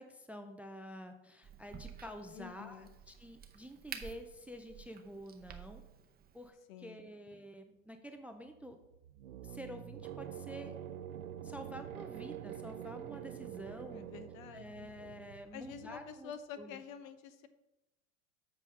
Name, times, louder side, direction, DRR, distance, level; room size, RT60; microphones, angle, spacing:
voice 1, 0.0-5.8 6.3-8.8 9.4-10.8 11.4-14.1 14.5-16.8, equal, 5° right, 7 dB, 0.3 m, -49 dB
Crack, 1.4-6.5, right 7 dB, 20° right, 0.8 m, -51 dB
voice 2, 2.3-2.9 6.7-7.1 13.9-14.9 15.5-17.5, left 8 dB, 75° left, 11 dB, 0.9 m, -48 dB
sound 1, 8.5-16.3, right 10 dB, 90° right, 0.7 m, -47 dB
7.7 x 4.9 x 5.3 m, 0.96 s
hypercardioid pair, 95°, 42 cm